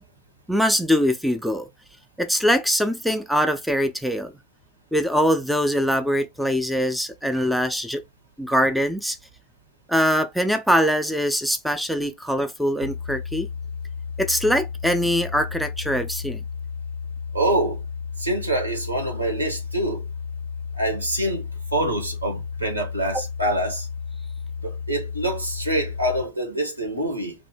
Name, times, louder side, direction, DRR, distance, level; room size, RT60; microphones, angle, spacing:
voice 1, 0.5-1.7 2.2-4.3 4.9-8.0 8.4-9.2 9.9-13.5 14.2-16.4, equal, ahead, 0.4 m, -22 dB
sound 1, 12.8-26.3, left 6 dB, 70° left, 0.3 m, -33 dB
voice 2, 17.3-17.8 18.2-20.0 20.8-21.4 21.7-23.9 24.6-27.3, right 1 dB, 80° right, 1.2 m, -25 dB
2.7 x 2.6 x 4.3 m
figure-of-eight pair, 90°, 0 cm